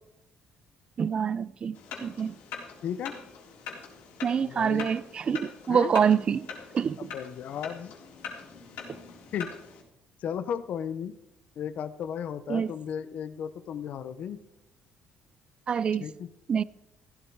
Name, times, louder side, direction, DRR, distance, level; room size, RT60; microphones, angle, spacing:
voice 1, 1.0-2.3 4.2-6.5 6.7-7.1 12.5-12.7 15.7-16.1 16.5-16.6, right 7 dB, 35° right, 0.4 m, -26 dB
sound 1, 1.7-9.8, left 6 dB, 90° left, 3.7 m, -43 dB
voice 2, 2.8-3.2 4.4-4.9 5.7-5.9 7.0-8.0 9.3-9.5 10.2-11.2 11.6-14.4 16.0-16.3, left 8 dB, 60° left, 0.8 m, -35 dB
15.0 x 12.5 x 4.7 m
cardioid pair, 125°, 3 cm